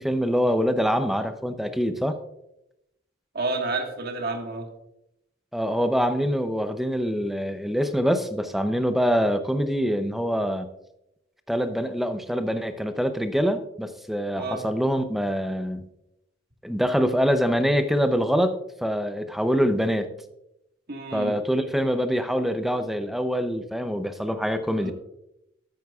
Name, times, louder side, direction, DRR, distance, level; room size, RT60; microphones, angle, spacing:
voice 1, 0.0-2.2 5.5-10.7 11.5-15.9 16.6-18.6 18.8-20.1 21.1-24.9, equal, ahead, 8 dB, 0.6 m, -24 dB
voice 2, 3.3-4.7 14.3-14.6 20.9-21.4 24.8-24.9, right 3 dB, 55° right, 3 dB, 1.6 m, -30 dB
13.0 x 9.0 x 2.4 m, 0.85 s
head